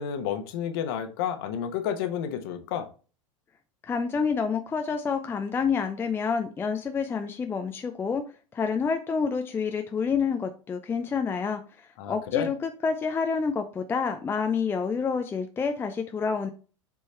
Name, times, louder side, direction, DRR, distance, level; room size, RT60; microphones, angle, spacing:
voice 1, 0.0-2.9 12.0-12.5, left 9 dB, 45° left, 8 dB, 1.1 m, -30 dB
voice 2, 3.8-8.2 8.5-16.5, left 5 dB, 15° left, 6 dB, 0.5 m, -28 dB
7.0 x 4.6 x 3.3 m, 0.36 s
figure-of-eight pair, 90°, 17 cm